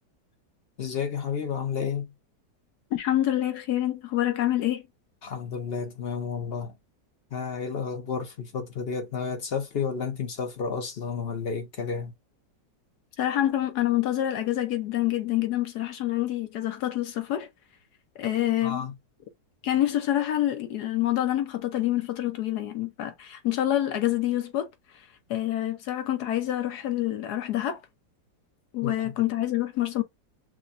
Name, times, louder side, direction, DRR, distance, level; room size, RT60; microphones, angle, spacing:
voice 1, 0.8-2.1 5.2-6.7 7.3-12.1 18.6-18.9 28.8-29.1, left 6 dB, 50° left, 0.7 m, -31 dB
voice 2, 2.9-4.8 13.2-17.5 18.2-18.8 19.6-24.7 25.3-27.8 28.7-30.0, left 13 dB, 70° left, 1.1 m, -27 dB
6.1 x 2.2 x 2.5 m
omnidirectional pair, 1.9 m